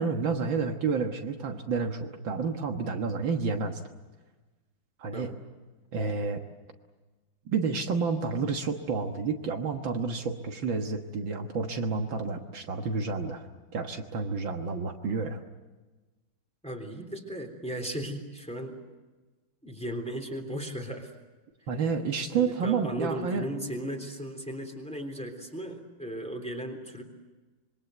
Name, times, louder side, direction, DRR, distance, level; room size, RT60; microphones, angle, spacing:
voice 1, 0.0-3.8 5.0-5.3 5.9-6.4 7.5-13.5 13.7-15.4 21.7-23.5, right 5 dB, 70° right, 4 dB, 2.1 m, -30 dB
voice 2, 16.6-18.8 19.6-21.1 22.4-27.0, equal, 5° left, 3 dB, 3.4 m, -36 dB
26.0 x 22.5 x 8.0 m, 1.2 s
omnidirectional pair, 2.3 m